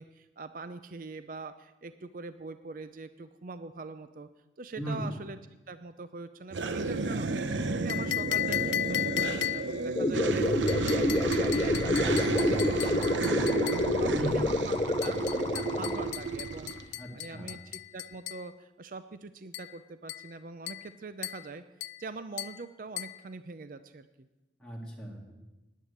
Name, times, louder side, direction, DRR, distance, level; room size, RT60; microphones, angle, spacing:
voice 1, 0.0-4.3 4.6-5.4 5.7-7.4 7.8-13.6 14.0-21.6 22.0-24.3, right 3 dB, 50° right, 11 dB, 0.5 m, -43 dB
voice 2, 4.8-5.1 14.1-14.4 17.0-17.6 24.6-25.3, right 1 dB, 5° left, -3 dB, 2.1 m, -37 dB
sound 1, 6.5-16.8, right 3 dB, 90° right, 0.8 m, -31 dB
sound 2, 7.9-9.9 10.7-13.9 15.0-18.5 19.5-19.8 20.1-20.3 20.7-20.9 21.2-21.5 21.8-22.0 22.4-22.6 23.0-23.2, left 14 dB, 80° left, 0.4 m, -36 dB
sound 3, 10.0-16.1, left 2 dB, 25° left, 0.4 m, -29 dB
10.0 x 8.5 x 9.5 m, 1.1 s
head